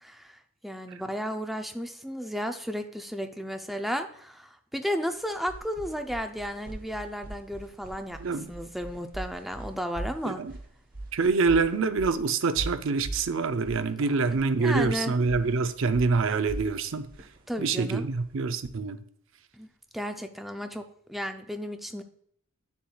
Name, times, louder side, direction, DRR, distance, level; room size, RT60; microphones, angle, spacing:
voice 1, 0.0-8.2 8.5-10.4 14.6-15.1 17.5-18.1 19.6-19.7 19.9-22.0, equal, ahead, 6 dB, 0.5 m, -33 dB
sound 1, 5.1-18.4, right 2 dB, 40° right, 1.0 m, -41 dB
voice 2, 11.1-17.1 17.6-19.0, right 4 dB, 60° right, 10 dB, 0.5 m, -26 dB
9.2 x 7.2 x 2.4 m, 0.65 s
head